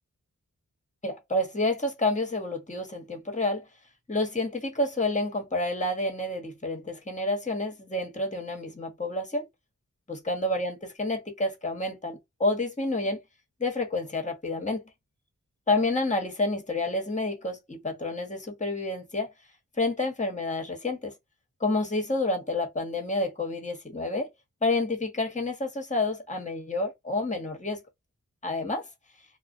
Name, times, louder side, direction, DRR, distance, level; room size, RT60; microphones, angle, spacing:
voice 1, 1.0-3.6 4.1-9.5 10.1-13.2 13.6-14.8 15.7-19.3 19.8-21.1 21.6-24.3 24.6-27.8 28.4-28.8, left 2 dB, 25° left, 1.1 m, -29 dB
2.3 x 2.1 x 2.6 m
cardioid pair, 45°, 31 cm